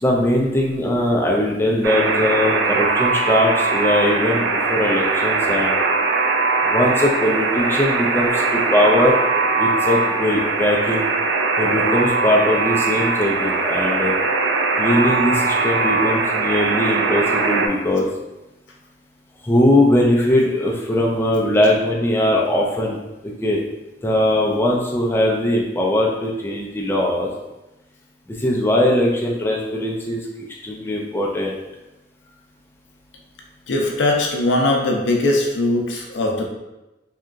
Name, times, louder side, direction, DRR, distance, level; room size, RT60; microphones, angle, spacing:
voice 1, 0.0-5.8 6.6-11.1 11.6-14.2 14.8-18.1 19.4-23.6 24.0-27.3 28.3-30.2 30.6-31.6, left 1 dB, 15° left, -2 dB, 0.3 m, -20 dB
Alarm, 1.8-17.7, right 3 dB, 70° right, 0.3 m, -20 dB
voice 2, 33.7-36.5, left 2 dB, 85° left, 1 dB, 0.5 m, -20 dB
2.8 x 2.3 x 2.4 m, 0.99 s
head